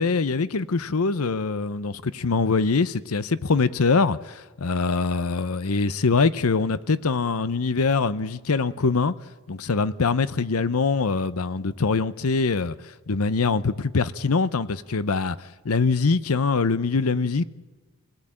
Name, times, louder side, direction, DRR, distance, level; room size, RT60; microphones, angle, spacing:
voice 1, 0.0-9.1 9.5-12.7 13.1-15.4 15.6-17.4, left 4 dB, 85° left, 0.8 m, -23 dB
27.0 x 17.5 x 8.8 m
head